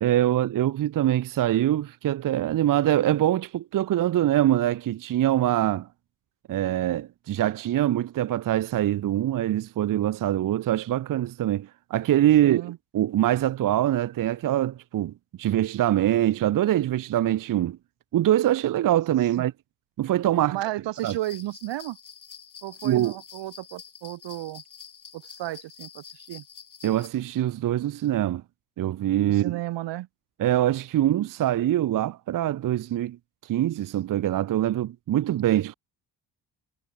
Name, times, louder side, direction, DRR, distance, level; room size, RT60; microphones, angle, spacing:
voice 1, 0.0-5.9 6.5-15.1 15.4-17.8 18.1-19.5 20.0-20.6 21.0-21.1 22.8-23.1 26.8-28.4 28.8-29.6 30.4-33.2 33.5-35.7, right 12 dB, 50° right, 0.6 m, -24 dB
voice 2, 12.4-12.8 19.3-19.5 20.5-22.0 22.6-24.6 25.1-26.4 29.3-30.1, right 15 dB, 80° right, 1.1 m, -33 dB
sound 1, 20.9-27.1, left 7 dB, 45° left, 4.3 m, -47 dB
cardioid pair, 90°, 42 cm